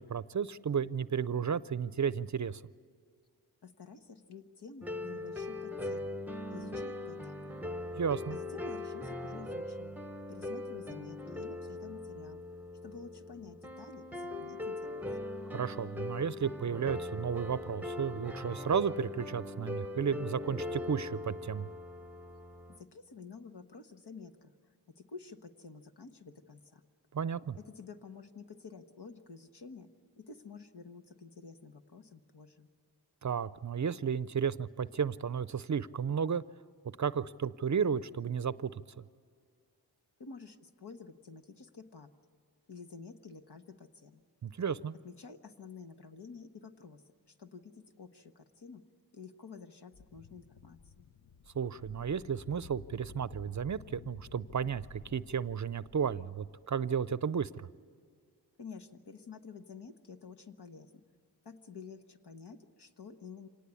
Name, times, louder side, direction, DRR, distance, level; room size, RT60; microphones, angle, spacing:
voice 1, 0.0-2.6 8.0-8.4 15.5-21.7 27.1-27.6 33.2-36.4 37.0-39.0 44.4-44.9 51.5-57.7, right 7 dB, 45° right, 17 dB, 0.5 m, -33 dB
voice 2, 3.6-6.2 6.5-7.4 8.3-10.0 10.3-12.4 12.8-15.0 22.7-24.5 24.9-26.8 27.5-29.9 30.2-32.7 40.2-42.1 42.7-44.2 45.0-47.0 47.3-48.8 49.1-51.1 58.6-61.0 61.4-63.5, left 5 dB, 75° left, 7 dB, 1.3 m, -50 dB
sound 1, 4.8-22.8, left 2 dB, 5° right, 0.8 m, -40 dB
sound 2, 49.9-57.0, left 5 dB, 55° left, 0.7 m, -54 dB
26.0 x 18.5 x 8.3 m, 2.1 s
wide cardioid pair, 60°, 41 cm